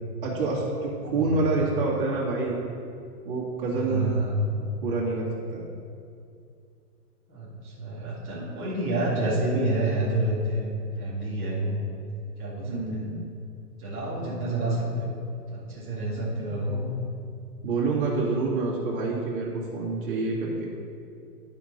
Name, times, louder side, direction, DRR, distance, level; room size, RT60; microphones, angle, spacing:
voice 1, 0.2-2.6 3.2-4.1 4.8-5.6 12.6-13.3 16.3-16.7 17.6-20.7, right 3 dB, 35° right, -6 dB, 2.2 m, -27 dB
voice 2, 1.1-1.4 3.7-4.4 7.3-11.8 12.4-13.0 13.8-15.2 15.5-17.0, right 1 dB, 5° left, -18 dB, 0.6 m, -28 dB
11.5 x 5.4 x 4.3 m, 2.4 s
hypercardioid pair, 175°, 48 cm